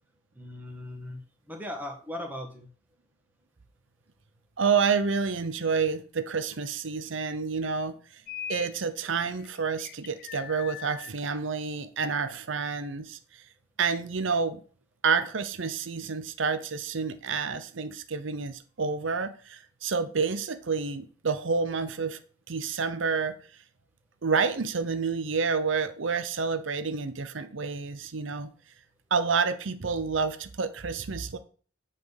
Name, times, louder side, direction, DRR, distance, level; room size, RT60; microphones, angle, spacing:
voice 1, 0.3-1.2 1.5-2.7, left 1 dB, 10° right, 2 dB, 1.6 m, -38 dB
voice 2, 4.6-8.2 8.5-13.4 13.8-14.6 15.0-22.2 22.5-23.4 24.2-28.5 29.1-31.4, right 5 dB, 75° right, 10 dB, 0.7 m, -29 dB
sound 1, 8.3-8.7 9.1-11.1, left 8 dB, 50° left, 0.6 m, -40 dB
8.2 x 4.2 x 7.0 m, 0.41 s
head